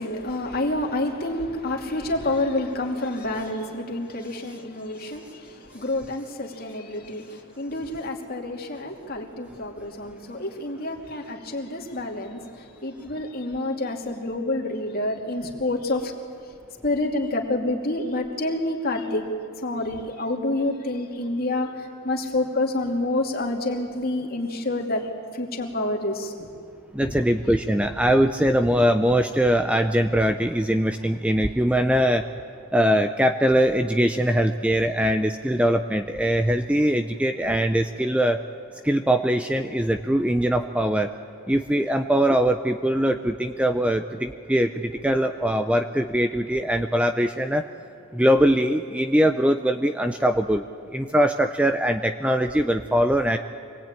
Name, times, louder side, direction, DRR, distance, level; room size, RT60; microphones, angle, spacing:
voice 1, 0.0-5.2 5.7-7.2 7.6-12.4 12.8-16.1 16.8-19.3 19.6-21.7 22.0-25.0 25.4-26.5, left 2 dB, 45° left, 0 dB, 2.7 m, -28 dB
voice 2, 26.9-32.2 32.7-38.4 38.8-41.1 41.5-47.6 48.1-50.6 50.9-53.4, equal, 5° right, 7 dB, 0.5 m, -22 dB
25.5 x 19.5 x 9.0 m, 2.5 s
head